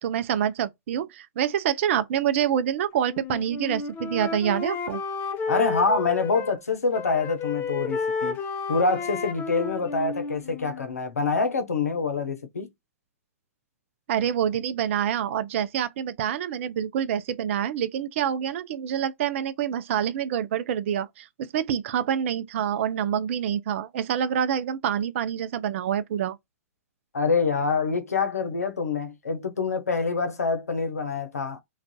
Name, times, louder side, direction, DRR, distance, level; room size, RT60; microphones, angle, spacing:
voice 1, 0.0-5.0 14.1-26.4, right 9 dB, 55° right, 0.5 m, -26 dB
Wind instrument woodwind instrument, 3.1-6.6 6.9-10.9, left 4 dB, 25° left, 0.7 m, -32 dB
voice 2, 5.5-8.4 8.7-12.7 27.1-31.6, left 4 dB, 85° left, 0.8 m, -26 dB
2.5 x 2.4 x 2.2 m
hypercardioid pair, 120°, 8 cm